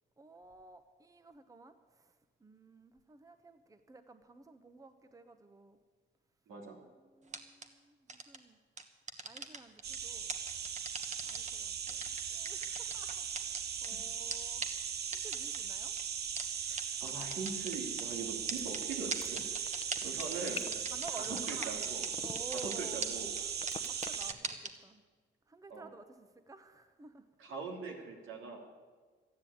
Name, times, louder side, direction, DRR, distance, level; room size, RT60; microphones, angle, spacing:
voice 1, 0.2-2.1 2.4-5.8 7.0-8.6 9.2-10.3 11.2-14.6 15.1-15.9 20.9-21.8 22.2-23.0 23.4-23.6 23.9-25.0 25.5-27.6, right 3 dB, 15° right, 10 dB, 0.9 m, -52 dB
voice 2, 6.5-6.8 13.9-14.0 16.6-22.0 22.5-23.3 25.7-25.9 27.4-28.6, right 4 dB, 85° right, 1 dB, 3.0 m, -42 dB
sound 1, 7.3-7.7 8.1-8.4 8.8-10.0 10.3-11.5 11.9-13.9 14.3-14.4 14.6-14.7 15.1-15.6 16.0-16.1 16.4-16.5 16.8-16.9 17.1-18.0 18.5-22.1 22.4-22.7 23.0-23.1 23.4-23.5 23.7-24.7, right 4 dB, 35° right, 1.4 m, -39 dB
sound 2, 9.8-24.3, right 7 dB, 55° right, 0.8 m, -38 dB
sound 3, 18.6-23.0 23.6-24.2, left 5 dB, 30° left, 0.8 m, -44 dB
13.0 x 9.7 x 8.7 m, 1.4 s
cardioid pair, 90°, 20 cm